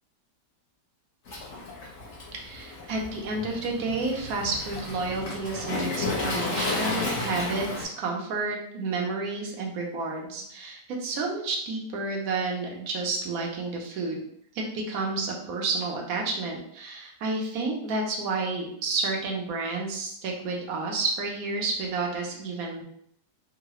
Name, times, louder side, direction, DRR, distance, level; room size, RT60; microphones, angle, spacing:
Waves surf, 1.3-7.8, left 2 dB, 50° left, 1.0 m, -33 dB
voice 1, 2.3-14.2 14.5-22.8, right 3 dB, 65° right, 0 dB, 1.1 m, -30 dB
3.7 x 2.1 x 3.0 m, 0.69 s
omnidirectional pair, 1.8 m